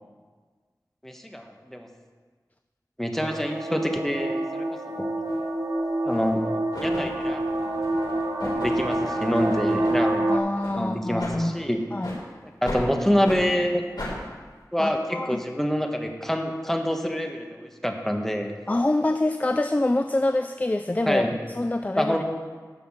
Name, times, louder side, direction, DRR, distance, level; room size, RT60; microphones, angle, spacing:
voice 1, 1.0-1.9 3.0-5.1 6.0-7.4 8.4-10.4 10.8-11.8 12.6-13.8 14.7-18.5 21.1-21.3 21.9-22.2, equal, 5° left, 3 dB, 1.3 m, -26 dB
sound 1, 3.2-10.4, right 1 dB, 55° right, 1.1 m, -27 dB
sound 2, 5.2-5.4 6.1-6.4 6.7-10.1 10.6-10.7 11.2-11.4 12.0-12.2 12.6-12.8 13.2-13.4 14.0-14.1, left 1 dB, 80° left, 3.5 m, -36 dB
voice 2, 10.2-11.6 11.9-12.2 14.8-15.4 18.7-21.2 21.5-22.2, left 2 dB, 20° left, 8 dB, 0.4 m, -25 dB
10.5 x 5.8 x 7.3 m, 1.5 s
wide cardioid pair, 50°, 7 cm